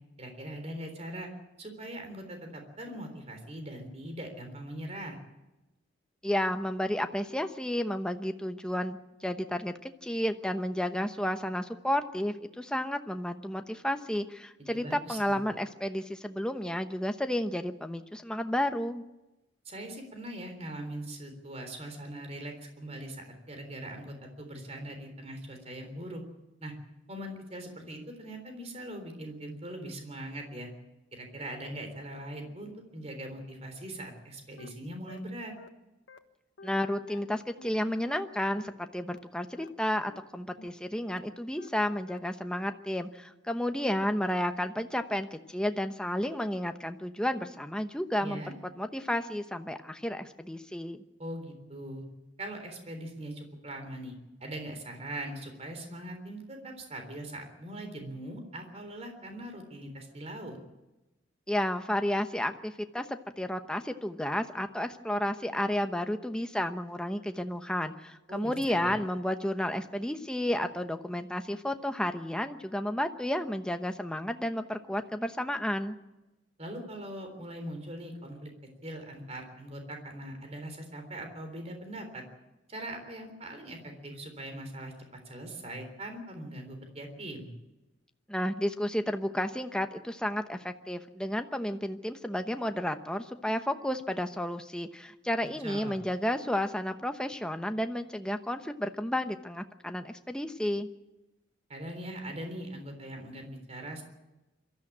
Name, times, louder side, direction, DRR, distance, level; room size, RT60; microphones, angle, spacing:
voice 1, 0.2-1.3 1.6-5.2 14.6-15.4 19.7-26.2 26.6-26.7 27.1-30.7 31.1-35.5 48.2-48.5 51.2-52.0 52.4-54.1 54.4-60.6 68.3-69.0 76.6-78.5 78.8-82.2 82.7-84.9 85.3-87.5 95.4-96.0 101.7-104.0, right 1 dB, 35° right, 5 dB, 3.7 m, -41 dB
voice 2, 6.2-19.0 36.6-48.4 48.8-51.0 61.5-76.0 88.3-100.9, left 1 dB, 5° left, 7 dB, 0.9 m, -32 dB
sound 1, 34.6-34.7 35.1-35.2 35.6-35.7 36.1-36.2 36.6-36.7 37.1-37.2 37.6-37.7 38.1-38.2 38.6-38.7 39.1-39.2 39.6-39.7 40.1-40.2 40.6-40.7 41.1-41.2 41.6-41.7 42.1-42.2, left 3 dB, 80° left, 1.3 m, -49 dB
23.0 x 13.5 x 8.6 m, 1.0 s
head